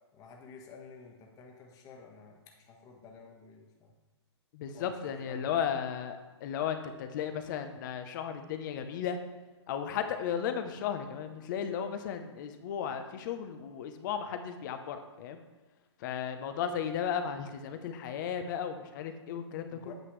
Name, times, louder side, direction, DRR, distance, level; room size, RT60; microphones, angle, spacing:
voice 1, 0.1-3.9 4.7-5.5 19.7-19.9, left 5 dB, 25° left, 0 dB, 1.5 m, -52 dB
voice 2, 4.5-9.2 9.7-15.4 16.0-19.9, left 8 dB, 40° left, 8 dB, 0.9 m, -35 dB
9.1 x 7.6 x 3.2 m, 1.2 s
hypercardioid pair, 135°, 15 cm